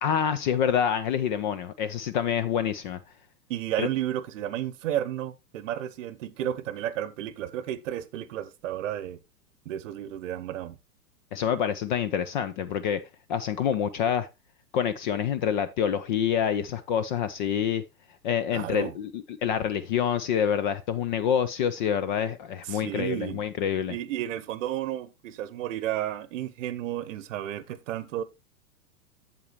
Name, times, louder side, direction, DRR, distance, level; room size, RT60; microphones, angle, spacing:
voice 1, 0.0-3.0 3.8-3.9 11.3-13.0 13.3-14.3 14.7-17.8 18.2-24.0, left 8 dB, 30° left, 0.5 m, -27 dB
voice 2, 3.5-9.2 9.7-10.8 18.5-18.9 22.7-23.4 23.9-28.2, right 12 dB, 50° right, 0.9 m, -32 dB
8.3 x 7.4 x 3.1 m
figure-of-eight pair, 110°, 47 cm